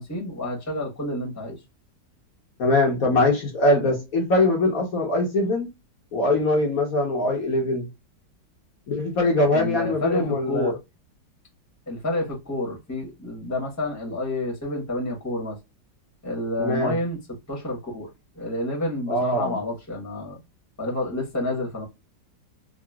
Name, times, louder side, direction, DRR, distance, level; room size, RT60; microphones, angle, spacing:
voice 1, 0.0-1.6 9.5-10.7 11.9-15.6 16.2-17.2 17.5-18.1 18.4-20.4 20.8-21.8, left 1 dB, 10° left, 1.0 m, -29 dB
voice 2, 2.6-5.7 6.1-7.9 8.9-10.7 16.6-17.0 19.1-19.6, left 2 dB, 60° left, 1.2 m, -22 dB
3.7 x 2.3 x 2.2 m
omnidirectional pair, 1.9 m